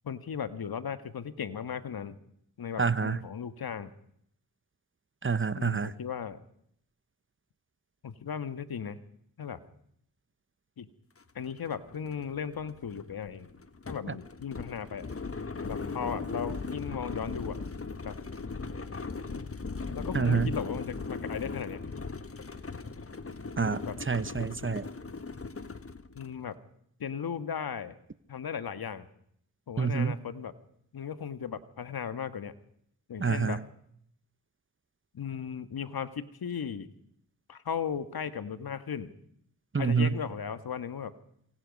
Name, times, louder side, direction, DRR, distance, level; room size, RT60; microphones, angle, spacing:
voice 1, 0.0-2.2 2.6-3.9 5.6-6.4 8.0-9.0 9.4-9.6 10.8-10.9 11.4-13.5 13.9-15.1 15.7-17.6 18.0-18.2 19.9-21.8 23.8-23.9 26.1-26.6 27.0-28.0 28.3-29.1 29.7-30.5 30.9-32.6 33.1-33.6 35.1-36.9 37.5-39.1 39.8-41.1, left 7 dB, 65° left, 11 dB, 1.8 m, -36 dB
voice 2, 2.8-3.2 5.2-5.9 14.1-14.2 20.1-20.5 23.6-24.9 29.8-30.2 33.2-33.6 39.7-40.1, right 5 dB, 30° right, 16 dB, 1.1 m, -27 dB
sound 1, 11.2-11.3 11.6-26.4, left 4 dB, 35° left, 1.6 m, -38 dB
27.5 x 24.5 x 5.4 m, 0.70 s
supercardioid pair, 40°, 39 cm